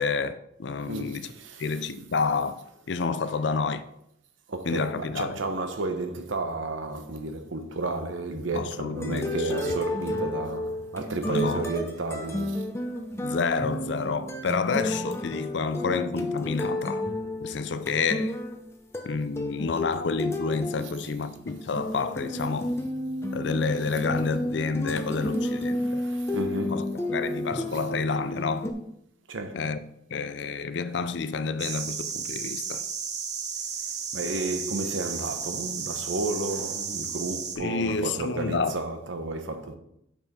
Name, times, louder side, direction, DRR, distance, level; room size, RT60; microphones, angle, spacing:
voice 1, 0.0-1.3 1.6-2.6 2.9-3.8 4.7-5.4 8.5-9.8 11.3-11.6 13.2-17.1 17.4-18.4 19.0-22.7 23.3-26.0 26.7-26.8 27.1-28.7 29.5-29.8 30.1-32.8 37.6-38.8, left 4 dB, 70° left, 0.5 m, -29 dB
voice 2, 0.8-1.6 2.0-2.1 4.5-12.7 25.7-26.8 29.3-29.6 34.1-39.8, right 2 dB, 90° right, 0.9 m, -32 dB
sound 1, 8.9-28.7, left 1 dB, 15° left, 0.7 m, -32 dB
sound 2, 31.6-37.6, right 6 dB, 40° right, 0.8 m, -33 dB
6.7 x 5.5 x 4.3 m
head